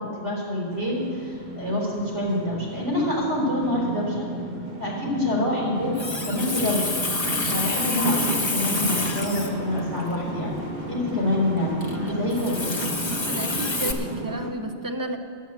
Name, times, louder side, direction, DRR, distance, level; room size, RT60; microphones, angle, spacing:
voice 1, 0.0-4.2 4.8-5.9 6.2-6.9 7.5-10.6 10.9-12.8, left 1 dB, 70° right, -4 dB, 4.9 m, -26 dB
sound 1, 0.7-14.5, right 2 dB, 40° right, 1.2 m, -34 dB
Water tap faucet, 5.7-13.9, left 2 dB, 25° left, 1.0 m, -29 dB
voice 2, 13.3-15.2, right 1 dB, 20° right, 5 dB, 0.6 m, -31 dB
11.0 x 8.1 x 9.5 m, 2.2 s
omnidirectional pair, 1.2 m